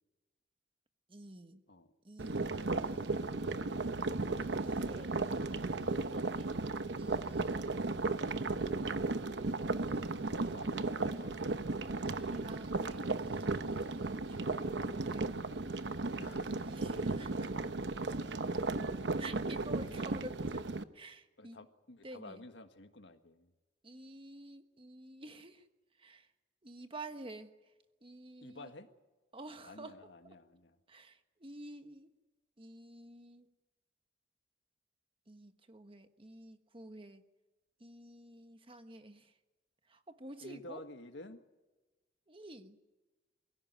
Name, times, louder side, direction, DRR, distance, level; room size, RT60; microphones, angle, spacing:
voice 1, 1.1-1.6 2.0-3.7 4.4-6.6 7.0-7.6 9.9-11.3 12.0-15.4 16.2-17.9 19.2-20.7 20.9-21.6 22.0-22.4 23.8-25.6 26.0-26.3 26.6-27.5 28.0-28.7 29.3-30.0 30.9-32.1 32.6-33.5 35.3-37.2 37.8-39.3 39.9-40.8 42.3-42.8, right 2 dB, 30° right, 8 dB, 1.4 m, -50 dB
sound 1, 2.2-20.8, right 3 dB, 75° right, 0.9 m, -35 dB
voice 2, 10.4-11.4 16.2-16.7 19.8-20.2 21.4-23.5 28.4-28.9 29.6-30.8 40.4-41.4, left 2 dB, 90° left, 7 dB, 1.7 m, -51 dB
23.0 x 16.0 x 9.5 m, 1.2 s
head